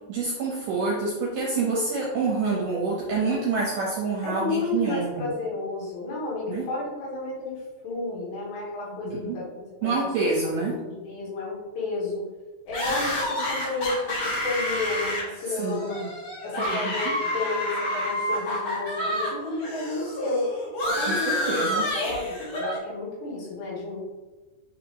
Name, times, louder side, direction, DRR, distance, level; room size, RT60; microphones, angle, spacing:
voice 1, 0.1-5.3 6.5-6.7 9.0-9.4 9.8-10.8 15.6-16.1 16.6-17.1 21.1-21.9, right 4 dB, 80° right, -3 dB, 1.9 m, -27 dB
voice 2, 4.2-10.1 10.4-12.3 12.7-16.1 16.4-20.5 20.8-24.0, left 3 dB, 80° left, -4 dB, 3.7 m, -32 dB
sound 1, 12.7-19.3 19.6-22.8, left 1 dB, 50° left, 1.9 m, -29 dB
9.0 x 3.4 x 3.0 m, 1.2 s
omnidirectional pair, 4.9 m